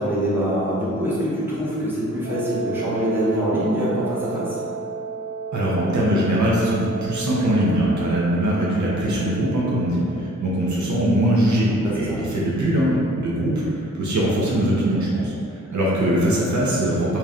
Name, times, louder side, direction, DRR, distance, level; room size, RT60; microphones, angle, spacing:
voice 1, 0.0-4.6 11.8-12.3, equal, 5° right, -8 dB, 0.9 m, -24 dB
Wind instrument woodwind instrument, 2.2-10.1, right 5 dB, 35° right, 0.7 m, -33 dB
voice 2, 5.5-17.2, right 1 dB, 75° right, -6 dB, 0.8 m, -21 dB
3.1 x 2.8 x 3.7 m, 2.5 s
wide cardioid pair, 110°, 29 cm